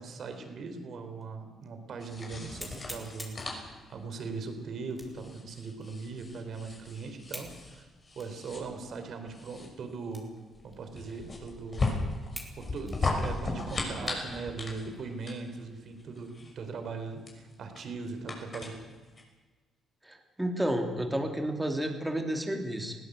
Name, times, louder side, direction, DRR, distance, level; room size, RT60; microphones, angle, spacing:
voice 1, 0.0-3.4 3.9-7.8 8.2-10.3 10.6-11.9 12.6-18.8, right 4 dB, 60° right, 7 dB, 3.9 m, -40 dB
sound 1, 1.2-1.3 1.8-1.9 2.6-3.5 4.9-5.3 5.8-5.9 7.3-7.6 8.2-8.3 9.0-9.1 10.1-10.4 10.7-10.8 11.5-11.6 12.3-12.6 12.9-14.3 14.8-15.0 15.5-15.9, left 1 dB, 10° left, 4.6 m, -45 dB
sound 2, 2.0-19.2, left 3 dB, 35° left, 6.2 m, -37 dB
voice 2, 20.0-23.0, right 1 dB, 10° right, 4 dB, 3.1 m, -31 dB
20.5 x 16.0 x 8.2 m, 1.3 s
cardioid pair, 90°, 0 cm